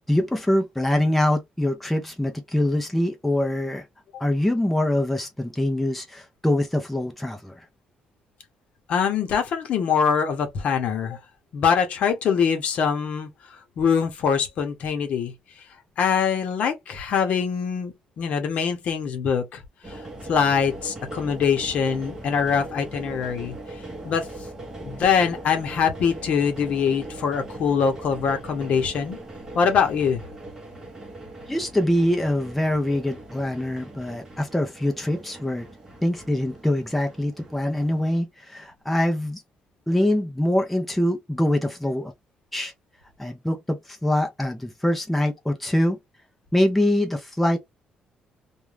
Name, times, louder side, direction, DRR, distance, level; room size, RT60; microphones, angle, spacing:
voice 1, 0.1-3.8 4.2-7.6 31.5-35.7 36.0-39.4 39.9-42.1 42.5-42.7 43.2-46.0 46.5-47.6, left 1 dB, 5° left, 0.5 m, -24 dB
voice 2, 8.9-11.2 11.5-13.3 13.8-15.3 16.0-19.6 19.9-20.0 20.3-23.6 24.0-24.3 24.8-29.2 29.5-30.2, left 6 dB, 55° left, 0.8 m, -23 dB
sound 1, 19.8-38.2, right 1 dB, 20° right, 0.9 m, -40 dB
2.4 x 2.2 x 3.1 m
cardioid pair, 165°, 3 cm